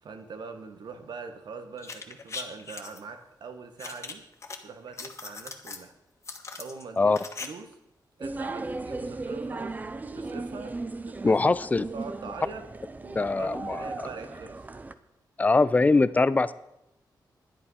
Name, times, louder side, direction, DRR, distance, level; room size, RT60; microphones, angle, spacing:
voice 1, 0.0-4.2 4.6-5.9 6.5-7.8 8.2-9.8 10.1-10.8 11.0-11.5 11.9-12.6 13.0-14.6, right 4 dB, 75° right, 7 dB, 1.4 m, -42 dB
sound 1, 1.8-3.0 3.8-4.6 4.9-5.8 6.2-7.5 7.7-7.8, left 4 dB, 40° left, 1.2 m, -39 dB
sound 2, 8.2-14.9, right 3 dB, 20° right, 0.6 m, -37 dB
voice 2, 11.2-11.9 13.2-13.8 15.4-16.5, left 3 dB, 20° left, 16 dB, 0.4 m, -22 dB
11.0 x 10.5 x 5.6 m, 0.87 s
wide cardioid pair, 145°, 7 cm